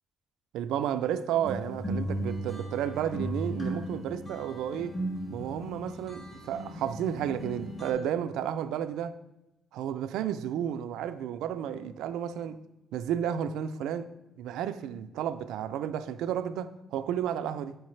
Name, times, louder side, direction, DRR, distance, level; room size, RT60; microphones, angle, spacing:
voice 1, 0.5-5.0 5.3-9.2 9.7-12.6 12.9-14.1 14.4-17.8, right 9 dB, 90° right, 0.3 m, -32 dB
sound 1, 1.4-7.9, right 1 dB, 35° left, 2.0 m, -36 dB
9.1 x 4.7 x 3.2 m
cardioid pair, 90°, 0 cm